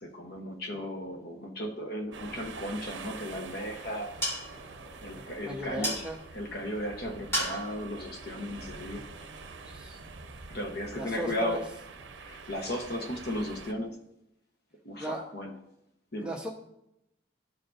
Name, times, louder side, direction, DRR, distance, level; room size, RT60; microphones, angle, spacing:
voice 1, 0.0-4.1 5.0-6.0 6.3-9.1 10.5-11.7 12.2-13.9 14.8-15.5 16.1-16.3, left 1 dB, 60° left, 4 dB, 1.0 m, -35 dB
sound 1, 2.1-13.7, right 4 dB, 80° right, 0.7 m, -46 dB
sound 2, 4.0-9.5, equal, 15° left, 1.7 m, -38 dB
voice 2, 5.1-6.2 9.6-10.0 10.9-11.6 15.0-15.2 16.2-16.5, right 1 dB, 5° right, -1 dB, 0.9 m, -37 dB
13.0 x 4.6 x 2.5 m, 0.83 s
head